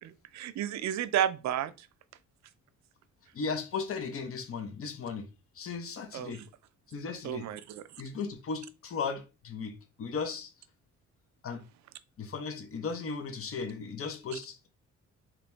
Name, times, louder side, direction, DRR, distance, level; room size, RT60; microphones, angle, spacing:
voice 1, 0.0-1.9 6.1-6.5 7.2-7.8, right 10 dB, 65° right, 0.5 m, -32 dB
voice 2, 3.3-5.3 5.5-6.4 6.9-7.4 8.0-10.5 11.4-11.6 12.2-14.7, left 5 dB, 45° left, 0.9 m, -36 dB
4.0 x 2.9 x 3.3 m
cardioid pair, 90°, 30 cm